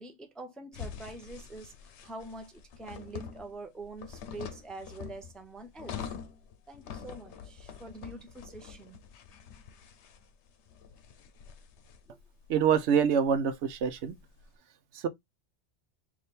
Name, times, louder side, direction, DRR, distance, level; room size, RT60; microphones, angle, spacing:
voice 1, 0.0-6.1 6.7-9.0 12.1-12.2, right 2 dB, ahead, 0.5 m, -45 dB
sound 1, 0.7-14.5, left 7 dB, 85° left, 0.9 m, -46 dB
voice 2, 12.5-14.1 14.9-15.1, right 7 dB, 85° right, 0.9 m, -25 dB
3.4 x 2.7 x 4.1 m
omnidirectional pair, 1.2 m